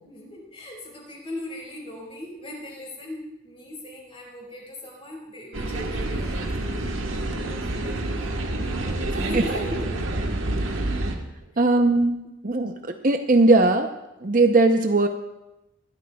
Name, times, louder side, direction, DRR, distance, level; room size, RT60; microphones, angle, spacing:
voice 1, 0.0-10.1, left 1 dB, 30° left, -2 dB, 4.5 m, -38 dB
sound 1, 5.5-11.2, right 1 dB, 90° right, 1.4 m, -28 dB
voice 2, 11.6-12.8 13.0-13.9 14.2-15.1, right 2 dB, 45° right, 6 dB, 0.7 m, -19 dB
21.0 x 12.5 x 2.3 m, 0.92 s
head